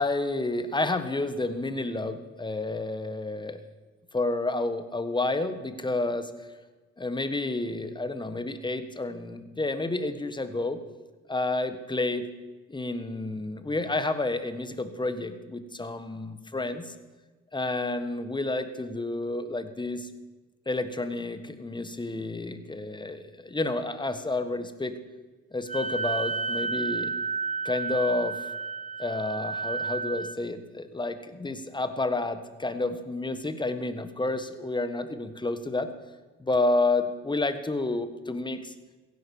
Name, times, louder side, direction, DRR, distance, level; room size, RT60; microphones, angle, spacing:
voice 1, 0.0-3.6 4.1-6.3 7.0-10.8 11.3-12.3 12.7-16.9 17.5-20.1 20.7-25.0 25.5-27.1 27.6-28.4 29.0-35.9 36.4-38.7, left 2 dB, 15° left, 10 dB, 1.4 m, -30 dB
Wind instrument woodwind instrument, 25.7-30.4, right 4 dB, 25° right, 1.1 m, -31 dB
16.0 x 11.0 x 7.2 m, 1.2 s
cardioid pair, 90°, 30 cm